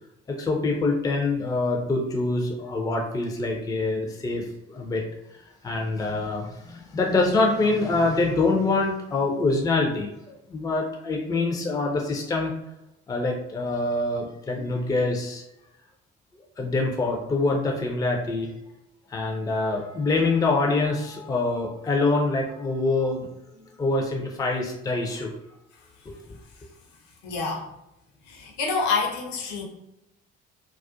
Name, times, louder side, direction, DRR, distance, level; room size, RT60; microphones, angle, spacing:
voice 1, 0.3-5.0 5.3-12.5 13.1-15.4 16.6-18.5 19.1-25.3 26.1-26.2, left 3 dB, 10° left, 1 dB, 0.4 m, -25 dB
voice 2, 27.2-27.7 28.3-29.7, left 4 dB, 55° left, 1 dB, 0.7 m, -27 dB
2.3 x 2.3 x 2.5 m, 0.86 s
figure-of-eight pair, 45°, 34 cm